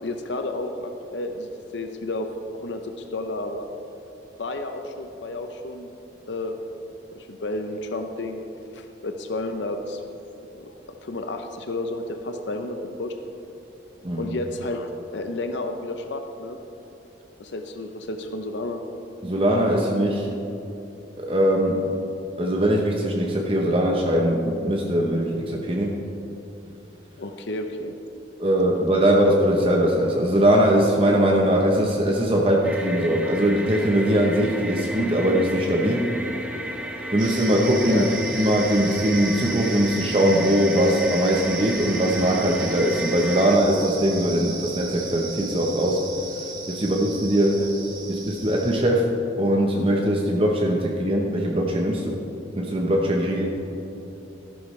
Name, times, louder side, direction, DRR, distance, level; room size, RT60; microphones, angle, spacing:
voice 1, 0.0-2.3 2.5-3.7 4.4-5.9 6.3-6.6 7.1-8.4 8.7-10.0 10.6-10.7 11.0-13.1 14.2-16.6 17.4-18.8 27.2-27.9 37.9-38.1 47.6-47.7, left 2 dB, 70° left, 6 dB, 0.7 m, -31 dB
voice 2, 19.2-20.4 21.2-21.8 22.4-26.0 28.4-36.1 37.1-46.0 46.7-47.6 48.1-49.1 49.4-52.2 52.6-53.5, equal, 30° right, -1 dB, 0.8 m, -21 dB
sound 1, 32.6-43.6, equal, 5° right, 0.8 m, -33 dB
sound 2, 37.2-48.8, right 4 dB, 45° right, 2.2 m, -36 dB
14.5 x 12.0 x 3.2 m, 2.9 s
head